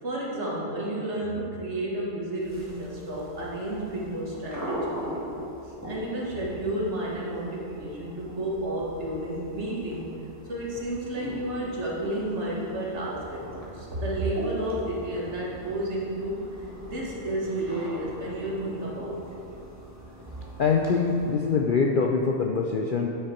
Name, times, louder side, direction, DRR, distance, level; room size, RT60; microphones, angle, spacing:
voice 1, 0.0-5.3 5.6-10.1 10.5-16.4 16.8-19.6, right 1 dB, 50° right, -4 dB, 1.7 m, -31 dB
sound 1, 2.4-21.7, equal, 10° right, 1.4 m, -41 dB
voice 2, 20.6-23.1, left 5 dB, 70° left, 1 dB, 0.5 m, -24 dB
9.6 x 6.5 x 4.4 m, 2.9 s
omnidirectional pair, 1.5 m